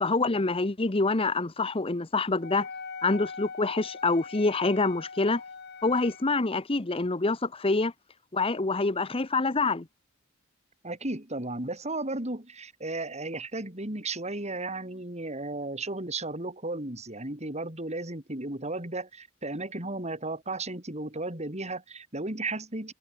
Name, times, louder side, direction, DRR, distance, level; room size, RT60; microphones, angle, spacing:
voice 1, 0.0-2.7 3.0-5.4 5.8-7.9 8.3-9.9, left 3 dB, 25° left, 0.9 m, -26 dB
Wind instrument woodwind instrument, 2.4-6.3, left 5 dB, 55° left, 2.3 m, -42 dB
voice 2, 10.8-22.9, right 2 dB, 35° right, 4.7 m, -34 dB
head